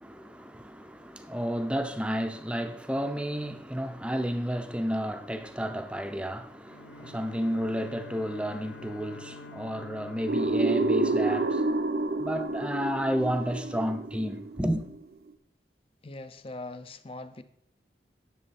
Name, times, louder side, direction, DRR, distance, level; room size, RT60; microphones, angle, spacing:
voice 1, 0.0-11.9 12.2-14.8, equal, 5° right, 0.6 m, -31 dB
Bowed string instrument, 6.6-12.2, left 3 dB, 70° left, 0.8 m, -48 dB
sound 1, 10.3-15.0, right 2 dB, 60° right, 0.6 m, -28 dB
voice 2, 16.0-17.4, left 2 dB, 30° left, 0.6 m, -41 dB
11.0 x 6.8 x 4.1 m
head